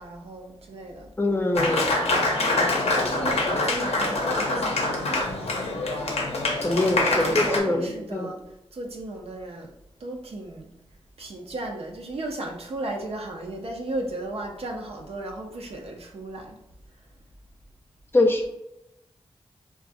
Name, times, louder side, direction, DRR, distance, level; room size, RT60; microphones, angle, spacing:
voice 1, 0.0-1.1 3.1-5.8 6.9-8.4 8.7-9.7 10.0-10.7 11.2-16.6, right 2 dB, 70° right, 0 dB, 0.5 m, -35 dB
voice 2, 1.2-1.9 6.6-8.3 18.1-18.5, left 2 dB, 20° left, 4 dB, 0.5 m, -23 dB
Applause, 1.6-7.6, left 2 dB, 80° left, 0.6 m, -25 dB
3.8 x 2.3 x 2.5 m, 0.87 s
wide cardioid pair, 75°, 11 cm